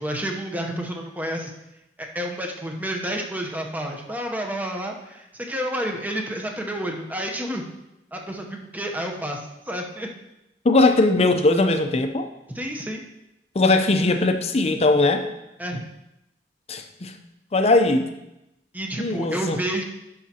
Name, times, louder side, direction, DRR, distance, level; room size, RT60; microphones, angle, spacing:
voice 1, 0.0-1.5 2.0-7.6 8.1-10.1 12.5-13.0 15.6-15.8 18.7-19.8, right 1 dB, 10° right, 1 dB, 0.8 m, -30 dB
voice 2, 10.6-12.3 13.5-15.2 16.7-17.1 17.5-18.1 19.0-19.6, left 2 dB, 35° left, 7 dB, 0.6 m, -19 dB
11.0 x 5.8 x 2.9 m, 0.90 s
head